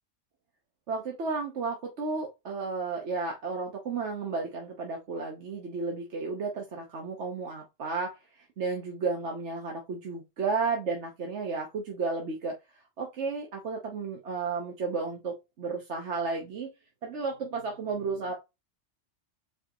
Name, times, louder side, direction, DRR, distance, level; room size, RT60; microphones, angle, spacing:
voice 1, 0.9-12.6 13.0-16.7 17.0-18.3, right 4 dB, 65° right, 1 dB, 1.3 m, -33 dB
5.0 x 3.4 x 2.9 m, 0.22 s
omnidirectional pair, 1.3 m